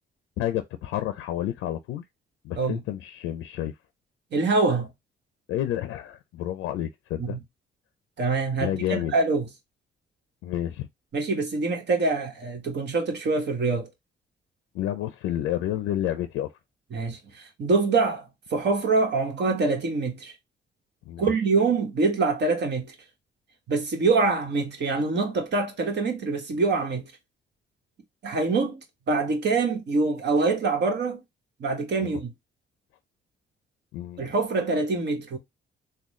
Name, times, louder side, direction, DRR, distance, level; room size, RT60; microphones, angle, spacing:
voice 1, 0.4-2.0 2.4-3.7 5.5-7.4 8.6-9.1 10.4-10.9 14.7-16.5 21.1-21.3 32.0-32.2 33.9-34.3, left 12 dB, 85° left, 0.4 m, -30 dB
voice 2, 4.3-4.9 7.2-7.4 8.2-9.5 11.1-13.9 16.9-18.2 18.5-20.3 21.2-22.9 23.7-27.1 28.2-28.8 29.1-31.2 31.6-32.3 34.2-35.4, right 3 dB, 60° right, 1.3 m, -25 dB
3.7 x 2.3 x 3.0 m
cardioid pair, 90°, 20 cm